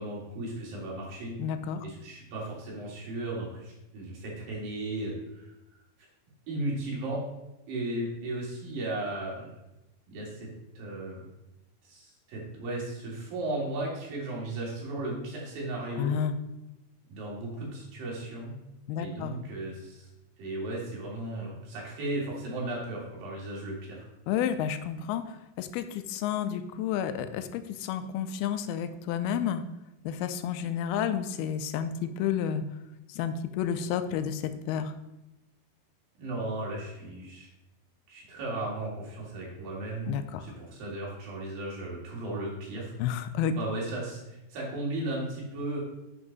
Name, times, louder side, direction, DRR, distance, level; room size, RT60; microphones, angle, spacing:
voice 1, 0.0-1.4 1.8-5.5 6.5-7.2 7.7-9.5 10.1-10.5 10.8-11.2 11.8-16.1 17.1-18.5 19.0-20.1 20.4-24.1 36.2-37.5 38.1-40.1 40.4-43.0 43.6-45.8, right 2 dB, 70° right, -4 dB, 3.9 m, -35 dB
voice 2, 1.4-1.9 15.9-16.3 18.9-19.4 24.3-29.6 30.0-32.6 33.1-34.9 40.1-40.5 43.0-43.5, left 9 dB, 90° left, 10 dB, 2.5 m, -31 dB
9.7 x 5.8 x 4.0 m, 0.94 s
omnidirectional pair, 4.3 m